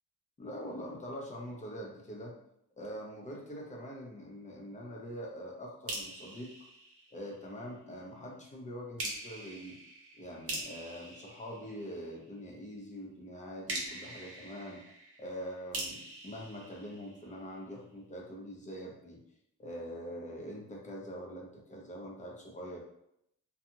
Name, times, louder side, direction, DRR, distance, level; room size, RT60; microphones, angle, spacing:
voice 1, 0.4-2.4 2.8-6.5 7.1-9.8 10.1-14.8 15.2-19.2 19.6-22.8, equal, 25° left, -1 dB, 0.6 m, -44 dB
sound 1, 5.9-7.6 9.0-12.3 13.7-17.6, right 2 dB, 45° right, 0.8 m, -43 dB
2.7 x 2.4 x 2.6 m, 0.77 s
cardioid pair, 140°, 32 cm